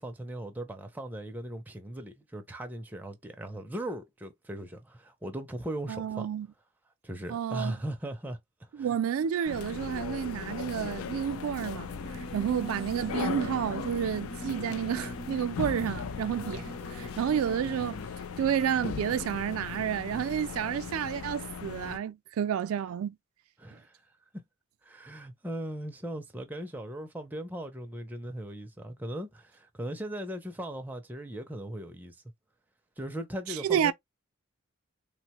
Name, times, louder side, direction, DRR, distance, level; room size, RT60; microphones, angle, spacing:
voice 1, 0.0-6.3 7.0-8.9 23.6-24.0 24.3-24.4 24.8-32.2 33.0-33.9, right 1 dB, 10° right, 0.4 m, -38 dB
voice 2, 5.9-6.5 7.3-7.8 8.7-18.0 18.4-23.2 33.5-33.9, right 8 dB, 80° right, 0.3 m, -30 dB
sound 1, 9.4-22.0, left 6 dB, 85° left, 0.4 m, -38 dB
Singing / Musical instrument, 11.8-18.1, right 2 dB, 25° left, 0.7 m, -43 dB
3.4 x 2.1 x 2.9 m
head